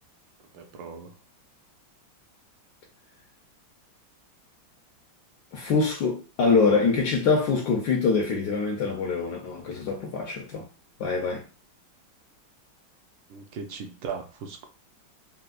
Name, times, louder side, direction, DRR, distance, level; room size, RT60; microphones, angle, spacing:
voice 1, 0.5-1.1 13.3-14.7, right 6 dB, 75° right, 1.3 m, -38 dB
voice 2, 5.5-10.7 11.0-11.4, left 4 dB, 70° left, 1.0 m, -24 dB
4.3 x 2.1 x 2.4 m
omnidirectional pair, 2.2 m